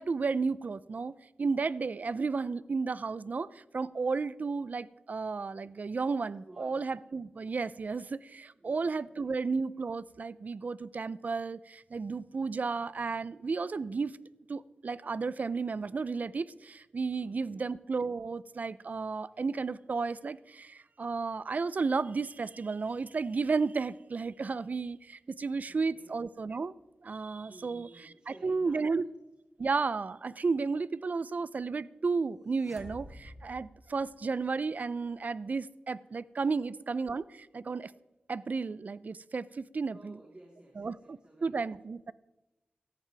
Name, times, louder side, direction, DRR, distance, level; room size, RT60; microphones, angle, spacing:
voice 1, 0.0-14.1 14.5-26.7 27.0-27.9 28.3-29.1 29.6-37.9 38.3-40.2 40.8-42.1, right 4 dB, 55° right, 18 dB, 0.5 m, -33 dB
voice 2, 6.5-6.8 8.5-9.4 17.2-17.6 19.3-19.4 25.7-26.1 27.5-29.1 39.9-41.7, right 1 dB, 30° right, -2 dB, 3.6 m, -55 dB
sound 1, 32.5-34.5, equal, 5° left, 2.8 m, -49 dB
18.0 x 14.0 x 3.4 m, 1.0 s
wide cardioid pair, 75°, 3 cm